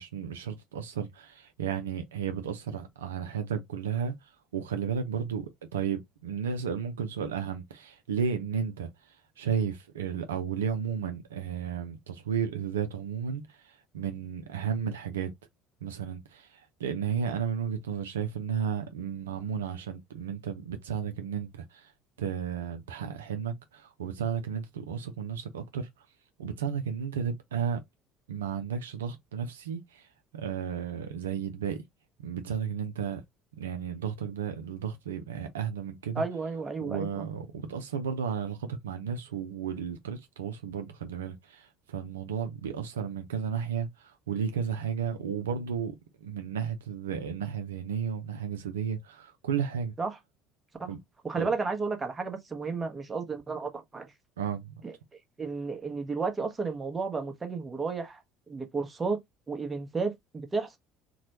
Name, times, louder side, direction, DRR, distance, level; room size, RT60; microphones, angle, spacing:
voice 1, 0.0-15.3 15.8-21.9 22.2-26.1 26.4-27.8 28.3-31.8 32.2-33.2 33.6-36.2 36.8-49.9 50.9-51.0 51.3-51.5 54.4-54.8, right 7 dB, 80° right, 0.4 m, -33 dB
voice 2, 36.1-37.3 50.0-50.2 50.8-50.9 51.2-54.1 54.8-59.2 59.5-60.8, right 4 dB, 25° right, 0.9 m, -33 dB
2.9 x 2.1 x 2.7 m
hypercardioid pair, 65°, 0 cm